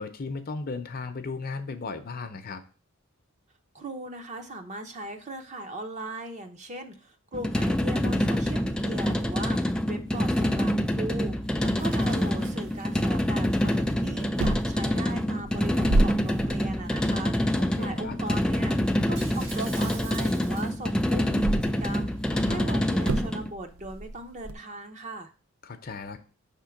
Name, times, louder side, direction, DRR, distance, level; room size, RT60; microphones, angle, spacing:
voice 1, 0.0-2.6 17.6-18.2 22.3-22.7 25.6-26.2, left 4 dB, 45° left, 8 dB, 0.6 m, -36 dB
voice 2, 3.7-11.3 11.6-18.8 19.1-22.1 22.4-25.3, right 2 dB, 35° right, 6 dB, 0.7 m, -38 dB
sound 1, 7.3-23.5, equal, 5° left, 0.3 m, -26 dB
sound 2, 11.8-13.2 13.5-13.9 14.4-20.7 21.3-24.5, right 2 dB, 85° right, 0.6 m, -32 dB
Shatter, 19.2-21.0 21.4-21.7, right 4 dB, 65° right, 1.3 m, -44 dB
5.7 x 3.7 x 5.7 m, 0.37 s
head